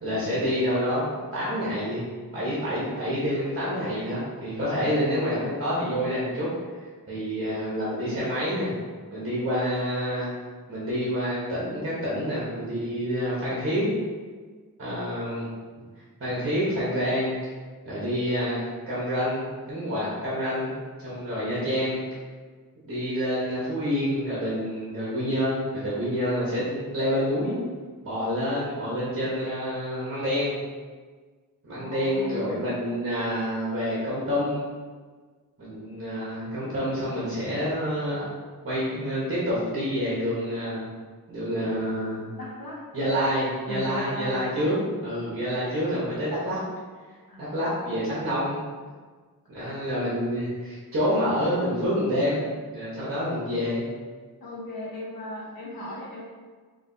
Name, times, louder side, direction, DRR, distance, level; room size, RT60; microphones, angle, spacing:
voice 1, 0.0-2.0 2.3-6.5 7.1-8.7 9.1-10.3 10.7-13.9 14.8-15.5 16.2-17.3 17.8-18.6 18.9-20.7 21.0-22.0 22.8-27.6 28.0-30.6 31.6-34.6 35.6-38.3 38.6-40.8 41.3-42.3 42.9-44.7 45.0-46.6 47.4-48.6 49.5-52.4 52.7-53.8, equal, 40° right, -9 dB, 1.2 m, -27 dB
voice 2, 31.7-32.7 42.3-42.8 43.7-44.4 45.0-45.4 47.3-47.6 49.5-49.7 54.4-56.2, left 1 dB, 85° left, -5 dB, 1.2 m, -37 dB
5.0 x 3.0 x 2.7 m, 1.5 s
wide cardioid pair, 145°, 35 cm